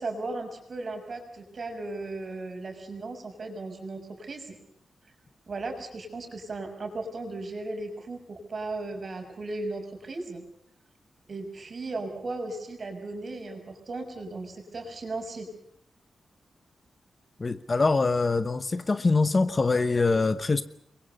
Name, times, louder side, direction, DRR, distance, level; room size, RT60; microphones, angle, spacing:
voice 1, 0.0-4.6 5.5-10.4 11.3-15.5, right 2 dB, 40° right, 6.4 m, -36 dB
voice 2, 17.4-20.6, left 3 dB, 25° left, 1.0 m, -24 dB
29.5 x 23.0 x 5.4 m
wide cardioid pair, 175°, 0 cm